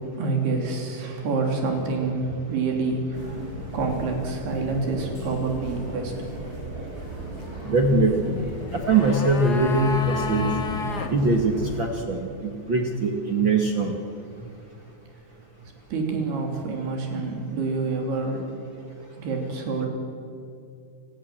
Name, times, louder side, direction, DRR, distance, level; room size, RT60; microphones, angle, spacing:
voice 1, 0.2-3.4 3.7-6.1 15.6-18.4 19.2-19.9, right 3 dB, 80° right, 2 dB, 5.2 m, -27 dB
sound 1, 3.1-11.8, right 1 dB, 20° right, 5.8 m, -36 dB
voice 2, 7.6-8.4 8.7-10.4 11.1-13.9, right 2 dB, 50° right, 3 dB, 1.4 m, -22 dB
sound 2, 8.5-11.1 11.4-11.5, left 4 dB, 55° left, 1.0 m, -31 dB
28.5 x 17.0 x 7.6 m, 2.5 s
omnidirectional pair, 4.5 m